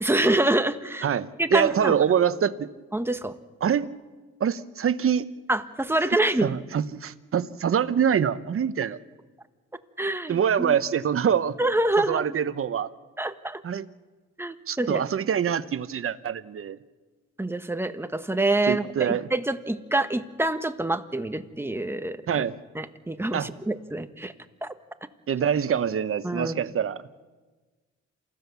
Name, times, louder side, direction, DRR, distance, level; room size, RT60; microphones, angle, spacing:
voice 1, 0.0-1.1 1.4-2.0 2.9-3.3 5.5-6.6 10.0-10.7 11.6-12.3 13.2-13.6 14.4-15.0 17.4-22.4 22.7-24.3 24.6-24.7 26.2-26.7, right 2 dB, 10° right, 9 dB, 1.4 m, -26 dB
voice 2, 1.0-2.7 3.6-3.9 4.4-5.3 6.4-9.0 10.3-11.5 12.0-12.9 13.6-13.9 14.7-16.8 18.7-19.3 22.3-22.6 23.3-23.5 25.3-27.0, right 8 dB, 45° right, 13 dB, 1.1 m, -25 dB
28.0 x 16.0 x 7.1 m, 1.3 s
cardioid pair, 90°, 30 cm